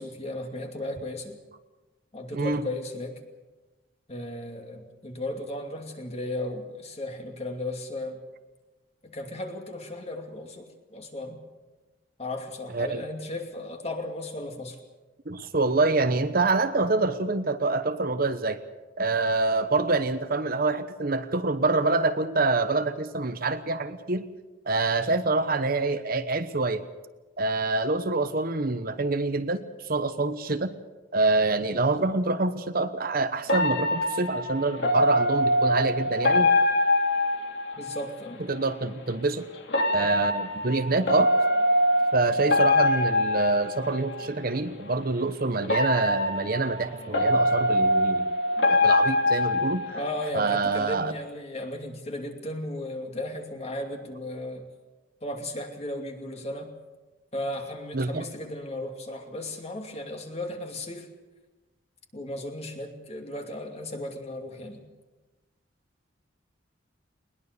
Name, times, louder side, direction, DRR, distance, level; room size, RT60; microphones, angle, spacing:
voice 1, 0.0-1.4 2.1-3.2 4.1-8.2 9.0-11.4 12.2-14.8 37.7-38.4 49.9-54.7 55.2-56.7 57.3-61.1 62.1-64.8, left 1 dB, 35° left, 3 dB, 2.6 m, -35 dB
voice 2, 2.3-2.6 12.7-13.0 15.3-18.6 19.0-24.3 24.7-26.8 27.4-30.7 31.1-36.5 38.5-39.5 39.9-41.3 42.1-48.3 48.7-49.8 50.3-51.1 57.9-58.2, right 3 dB, 50° right, 10 dB, 1.0 m, -26 dB
sound 1, 33.5-38.1 39.7-44.3 45.6-50.3, left 1 dB, 65° left, 2.6 m, -24 dB
21.0 x 20.5 x 6.8 m, 1.2 s
head